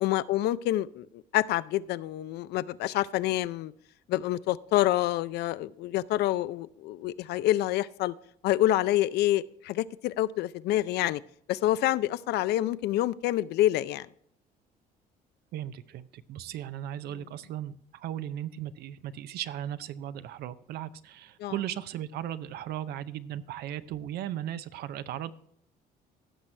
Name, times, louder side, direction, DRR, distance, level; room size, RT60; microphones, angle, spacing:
voice 1, 0.0-3.7 4.1-8.1 8.4-11.2 11.5-14.1 21.4-21.5, left 14 dB, 75° left, 17 dB, 0.4 m, -27 dB
voice 2, 15.5-25.3, right 11 dB, 70° right, 14 dB, 0.6 m, -37 dB
16.5 x 6.1 x 3.3 m, 0.69 s
cardioid pair, 110°, 17 cm